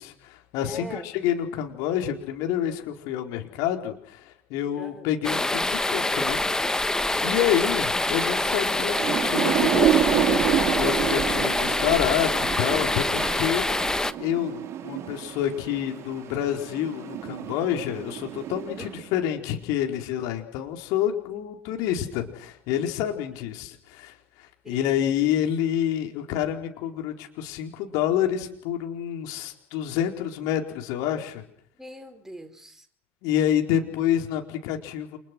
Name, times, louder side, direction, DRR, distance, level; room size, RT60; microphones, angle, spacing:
voice 1, 0.0-7.0 7.2-12.3 12.6-31.4 33.2-35.2, left 10 dB, 60° left, 4 dB, 4.6 m, -28 dB
voice 2, 0.6-1.1 4.8-5.1 18.8-19.0 24.6-24.9 31.8-32.9, right 1 dB, 5° right, 6 dB, 4.9 m, -42 dB
sound 1, 5.2-14.1, left 2 dB, 10° left, 1.4 m, -25 dB
Thunder / Rain, 8.7-19.2, right 11 dB, 45° right, 4.1 m, -29 dB
30.0 x 28.5 x 6.3 m, 0.65 s
figure-of-eight pair, 65°, 7 cm